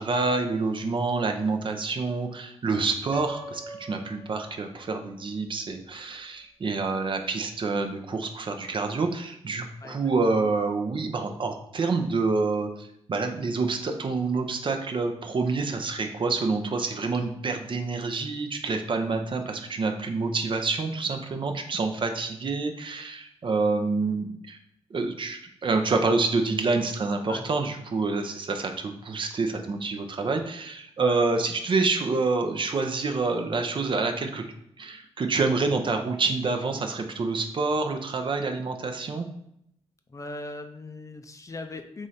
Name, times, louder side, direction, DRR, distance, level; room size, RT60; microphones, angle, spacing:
voice 1, 0.0-24.6 24.9-34.4 34.8-39.3, right 3 dB, 45° right, 5 dB, 0.6 m, -27 dB
Piano, 3.1-5.1, right 1 dB, ahead, 0.8 m, -40 dB
voice 2, 9.8-10.4 27.3-27.5 31.0-31.2 40.1-42.1, left 2 dB, 30° left, 7 dB, 0.5 m, -39 dB
3.6 x 3.1 x 4.1 m, 0.73 s
cardioid pair, 70°, 11 cm